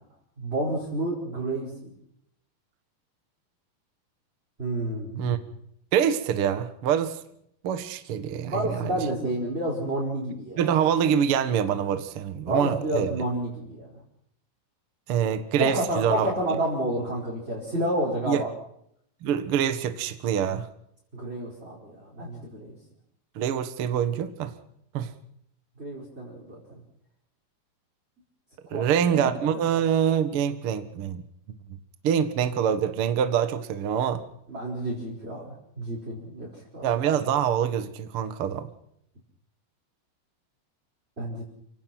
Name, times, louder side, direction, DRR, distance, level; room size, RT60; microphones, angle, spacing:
voice 1, 0.4-1.9 4.6-5.3 8.4-10.6 12.5-14.0 15.6-18.5 21.1-22.7 25.8-26.8 28.7-29.3 34.5-36.5 36.7-36.9 41.2-41.4, right 1 dB, 15° right, 4.9 m, -30 dB
voice 2, 5.9-7.2 7.6-9.0 10.6-13.1 15.1-16.3 18.3-18.4 19.2-20.7 23.3-24.5 24.9-25.1 28.7-31.2 32.0-34.2 36.8-38.7, right 8 dB, 75° right, 1.2 m, -25 dB
29.5 x 17.5 x 6.0 m
omnidirectional pair, 5.0 m